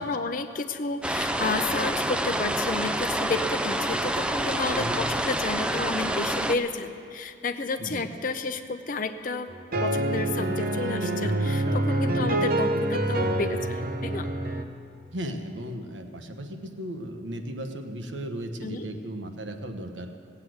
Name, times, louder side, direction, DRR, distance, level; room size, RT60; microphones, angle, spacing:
voice 1, 0.0-9.5 9.8-14.3 18.6-18.9, left 3 dB, 45° left, 8 dB, 0.6 m, -31 dB
sound 1, 1.0-6.5, right 1 dB, 5° right, 0.4 m, -27 dB
voice 2, 4.7-5.0 7.8-8.1 12.0-12.3 15.1-20.1, equal, 80° right, 5 dB, 1.2 m, -35 dB
sound 2, 9.5-14.7, right 1 dB, 50° right, 0.8 m, -26 dB
17.0 x 8.3 x 7.9 m, 2.3 s
head